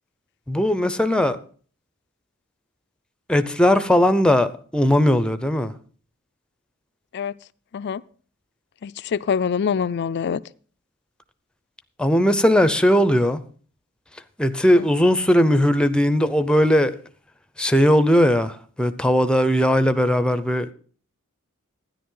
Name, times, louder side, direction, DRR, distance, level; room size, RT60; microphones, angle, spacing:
voice 1, 0.5-1.4 3.3-5.7 12.0-13.4 14.4-17.0 17.6-20.7, equal, 5° left, 0.6 m, -18 dB
voice 2, 7.7-8.0 8.8-10.4 14.8-14.9, left 6 dB, 55° left, 0.4 m, -25 dB
13.0 x 10.0 x 3.8 m
head